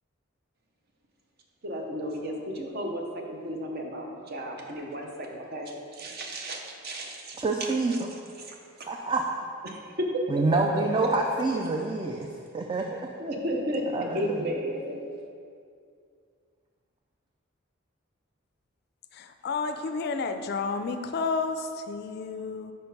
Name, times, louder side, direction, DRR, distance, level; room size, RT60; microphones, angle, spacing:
voice 1, 1.6-8.9 9.6-11.1 11.8-11.9 13.2-15.0, equal, 50° right, 1 dB, 0.7 m, -34 dB
voice 2, 7.4-7.9 8.9-9.2 10.3-12.3 12.5-13.0 13.9-14.2, right 3 dB, 25° right, 1 dB, 0.3 m, -26 dB
voice 3, 19.1-22.7, left 4 dB, 55° left, 8 dB, 0.3 m, -31 dB
5.0 x 4.4 x 5.3 m, 2.3 s
head